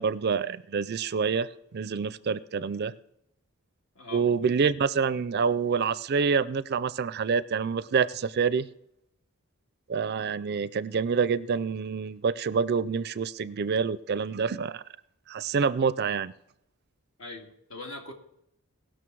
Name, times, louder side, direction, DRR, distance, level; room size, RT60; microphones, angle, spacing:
voice 1, 0.0-2.9 4.1-8.7 9.9-14.8 15.3-16.3, right 5 dB, 50° right, 17 dB, 0.4 m, -27 dB
voice 2, 17.2-18.1, left 2 dB, 65° left, 2 dB, 2.1 m, -41 dB
18.5 x 6.4 x 4.7 m, 0.77 s
head